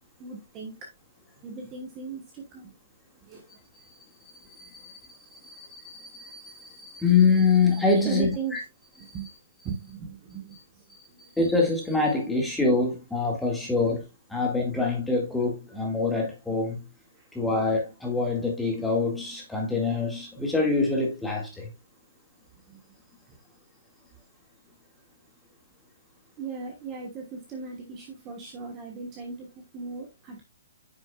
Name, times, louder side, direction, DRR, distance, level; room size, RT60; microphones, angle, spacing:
voice 1, 0.2-0.9 1.4-2.7 3.2-3.6 8.0-8.5 9.1-9.3 9.6-10.8 11.1-11.3 17.1-17.3 22.7-22.8 26.4-30.4, right 5 dB, 20° right, 1.3 m, -37 dB
voice 2, 4.4-8.6 9.0-9.1 10.9-16.8 17.3-21.7, left 4 dB, 5° left, 2.0 m, -26 dB
9.4 x 6.2 x 2.3 m
hypercardioid pair, 170°, 0 cm